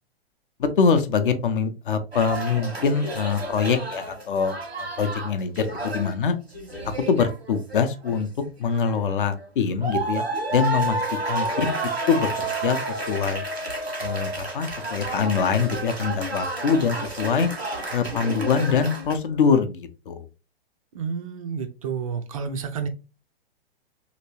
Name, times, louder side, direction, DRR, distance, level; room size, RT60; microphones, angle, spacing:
voice 1, 0.6-6.4 7.1-8.3 8.6-10.2 10.5-11.0 11.3-11.7 12.1-13.4 14.0-17.5 17.9-20.3, left 6 dB, 55° left, 8 dB, 0.6 m, -24 dB
sound 1, 2.1-6.1 6.5-8.2 8.7-9.5 9.8-19.2, right 2 dB, 85° right, 1.3 m, -31 dB
voice 2, 20.9-22.9, right 6 dB, 35° right, 8 dB, 0.4 m, -30 dB
2.9 x 2.8 x 2.7 m, 0.31 s
figure-of-eight pair, 110°, 31 cm